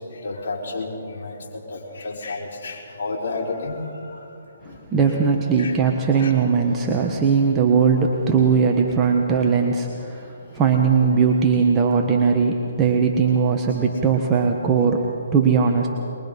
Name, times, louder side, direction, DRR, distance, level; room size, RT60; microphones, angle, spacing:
voice 1, 0.1-4.2 4.6-4.8 5.2-5.8 6.2-6.3 8.2-8.5 13.9-14.0, left 3 dB, 55° left, -4 dB, 4.6 m, -32 dB
voice 2, 4.9-15.0 15.3-15.9, right 5 dB, 20° right, 0 dB, 1.4 m, -19 dB
23.0 x 22.0 x 5.5 m, 2.7 s
hypercardioid pair, 145°, 0 cm